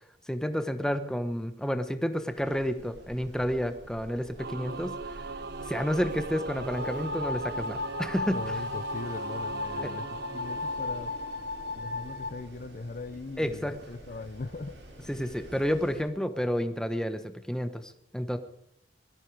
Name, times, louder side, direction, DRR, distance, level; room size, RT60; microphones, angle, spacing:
voice 1, 0.3-4.9 5.7-8.4 9.8-9.9 13.4-13.9 15.1-18.4, equal, 5° left, 9 dB, 1.1 m, -30 dB
Wind, 2.3-16.0, right 1 dB, 85° right, 6.8 m, -48 dB
Singing / Musical instrument, 4.4-11.9, right 3 dB, 60° right, 0.7 m, -39 dB
sound 1, 6.7-12.3, left 3 dB, 80° left, 4.8 m, -35 dB
voice 2, 8.3-11.1 11.7-14.8, left 3 dB, 50° left, 13 dB, 0.6 m, -40 dB
19.5 x 14.0 x 4.8 m, 0.71 s
head